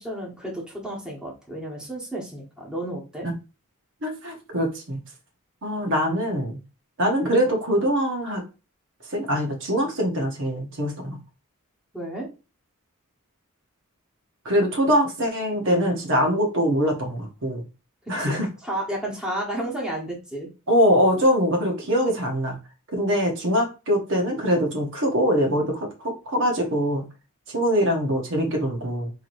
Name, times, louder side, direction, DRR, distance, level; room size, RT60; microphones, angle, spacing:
voice 1, 0.0-3.3 11.9-12.3 18.1-18.3 18.6-20.5, right 1 dB, 5° right, -3 dB, 1.2 m, -32 dB
voice 2, 4.0-5.0 5.6-6.6 7.0-8.4 9.1-11.2 14.4-17.6 18.1-18.5 20.7-22.6 22.9-27.0 27.5-29.1, equal, 60° right, 2 dB, 1.0 m, -23 dB
4.7 x 3.0 x 2.6 m, 0.30 s
head